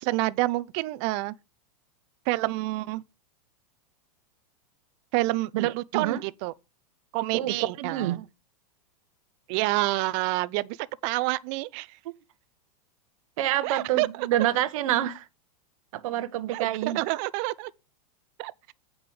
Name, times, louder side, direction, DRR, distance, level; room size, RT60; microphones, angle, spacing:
voice 1, 0.0-1.3 2.3-3.0 5.1-6.5 7.1-8.3 9.5-12.0 13.6-14.3 16.5-17.7 18.4-18.7, right 20 dB, 40° right, 0.5 m, -28 dB
voice 2, 5.5-6.2 7.3-8.2 13.4-15.2 15.9-17.0, right 13 dB, 60° right, 1.1 m, -27 dB
8.6 x 5.1 x 6.1 m
supercardioid pair, 150°, 19 cm